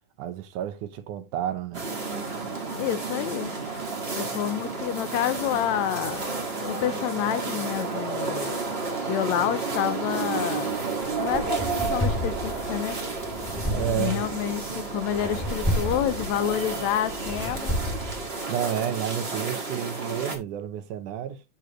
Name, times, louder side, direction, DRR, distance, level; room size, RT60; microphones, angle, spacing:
voice 1, 0.2-1.9 13.7-14.3 18.5-21.4, right 9 dB, 85° right, 2.5 m, -30 dB
sound 1, 1.7-20.3, right 3 dB, 30° right, 1.2 m, -31 dB
voice 2, 2.8-3.5 4.2-6.2 6.7-8.6 9.1-10.7 11.2-13.0 14.0-17.8, left 11 dB, 75° left, 1.8 m, -28 dB
sound 2, 11.0-18.4, left 1 dB, 5° left, 1.4 m, -32 dB
8.4 x 6.7 x 3.0 m
omnidirectional pair, 3.5 m